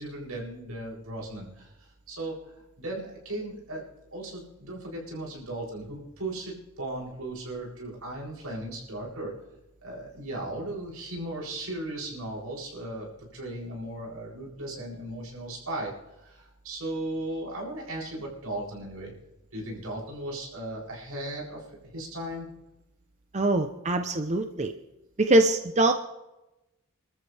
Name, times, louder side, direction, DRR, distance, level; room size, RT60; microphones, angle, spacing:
voice 1, 0.0-3.8 4.1-9.3 9.8-19.1 19.5-22.5, right 1 dB, 85° right, -3 dB, 7.9 m, -37 dB
voice 2, 23.3-24.7 25.2-25.9, right 2 dB, 35° right, 6 dB, 0.9 m, -23 dB
29.5 x 13.5 x 3.5 m, 0.98 s
head